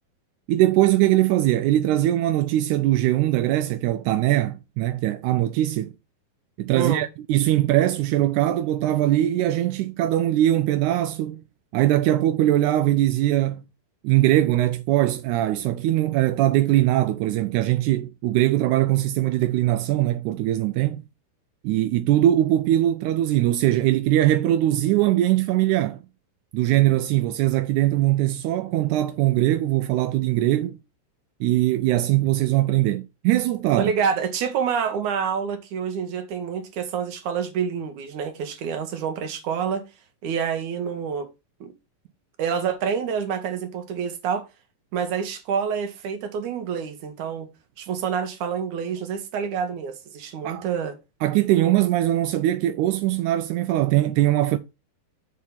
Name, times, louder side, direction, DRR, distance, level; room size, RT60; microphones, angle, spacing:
voice 1, 0.5-5.9 6.6-11.4 11.7-13.6 14.0-21.0 21.6-26.0 26.5-30.8 31.4-33.9 50.4-50.7 51.2-54.6, right 14 dB, 85° right, 1.7 m, -21 dB
voice 2, 6.7-7.0 33.8-39.8 40.2-41.3 41.6-41.7 42.4-44.5 44.9-47.5 47.8-51.0, right 7 dB, 65° right, 2.5 m, -27 dB
7.5 x 4.6 x 5.6 m
omnidirectional pair, 4.1 m